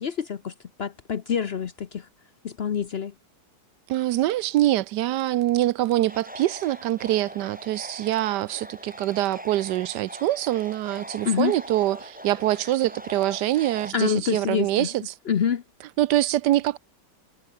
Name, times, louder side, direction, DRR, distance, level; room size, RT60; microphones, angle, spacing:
voice 1, 0.0-2.1 2.4-3.1 11.2-11.5 13.9-14.9 15.3-15.6, left 7 dB, 55° left, 0.7 m, -26 dB
voice 2, 3.9-14.9 16.0-16.8, right 14 dB, 75° right, 1.2 m, -24 dB
sound 1, 6.1-13.9, equal, 5° right, 3.1 m, -42 dB
omnidirectional pair, 1.9 m